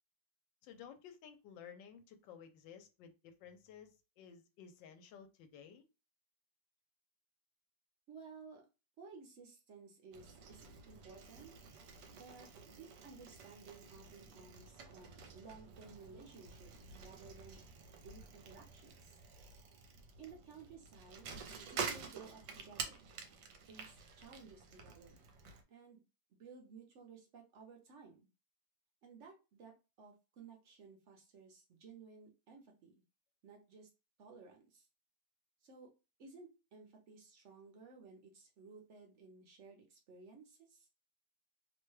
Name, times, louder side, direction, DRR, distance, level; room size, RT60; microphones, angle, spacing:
voice 1, 0.6-5.8, left 8 dB, 80° left, 8 dB, 1.3 m, -55 dB
voice 2, 8.1-8.6 9.0-11.5 12.1-17.6 18.0-19.2 20.2-21.3 21.7-23.0 23.7-25.2 25.7-26.0 26.3-28.2 29.0-32.9 33.4-33.9 34.2-34.9 35.6-35.9 36.2-40.9, right 4 dB, 55° right, 1 dB, 0.8 m, -56 dB
Bicycle, 10.1-25.6, right 5 dB, 75° right, 1.2 m, -49 dB
3.0 x 2.2 x 3.1 m, 0.29 s
omnidirectional pair, 2.0 m